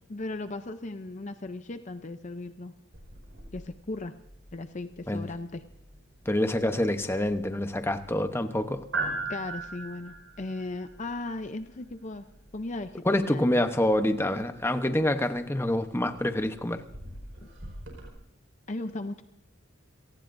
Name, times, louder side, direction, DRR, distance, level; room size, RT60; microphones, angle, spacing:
voice 1, 0.1-2.7 3.5-4.1 4.5-5.6 9.3-12.3 12.5-13.6 17.4-17.5 18.7-19.2, left 2 dB, 35° left, 9 dB, 0.6 m, -37 dB
sound 1, 2.9-18.1, right 3 dB, 60° right, 4.9 m, -42 dB
voice 2, 6.3-8.8 13.0-16.8, left 1 dB, 10° left, 8 dB, 0.9 m, -26 dB
29.5 x 18.5 x 2.6 m, 0.82 s
head